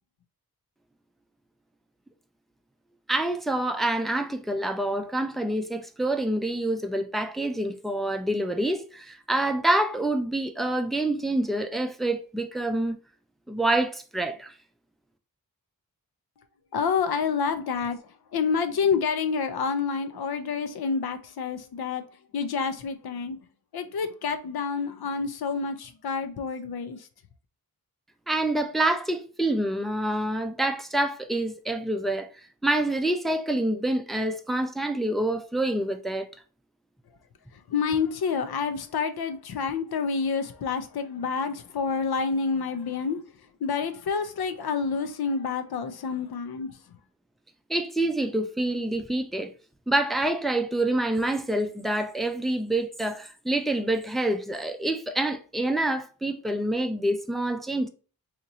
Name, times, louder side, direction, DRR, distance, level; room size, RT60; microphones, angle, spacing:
voice 1, 3.1-13.0 13.5-14.5 28.3-36.3 47.7-49.5 49.9-57.9, right 1 dB, ahead, 0.3 m, -27 dB
voice 2, 16.7-18.0 18.3-22.0 22.3-23.4 23.7-27.1 37.7-43.2 43.6-46.7, left 5 dB, 90° left, 0.6 m, -28 dB
2.9 x 2.5 x 4.0 m
wide cardioid pair, 110°, 37 cm